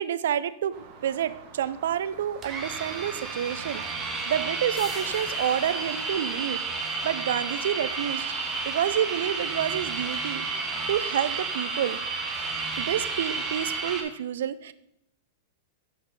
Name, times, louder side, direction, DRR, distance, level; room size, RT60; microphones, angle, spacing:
voice 1, 0.0-6.6 7.0-12.0 12.8-14.7, right 10 dB, 75° right, 16 dB, 0.3 m, -29 dB
sound 1, 0.7-13.8, right 5 dB, 45° right, 1.1 m, -49 dB
sound 2, 2.4-14.0, right 4 dB, 20° right, 1.0 m, -31 dB
sound 3, 4.8-10.2 10.6-10.7, left 9 dB, 35° left, 0.4 m, -46 dB
6.0 x 5.2 x 3.6 m, 0.79 s
hypercardioid pair, 125°, 0 cm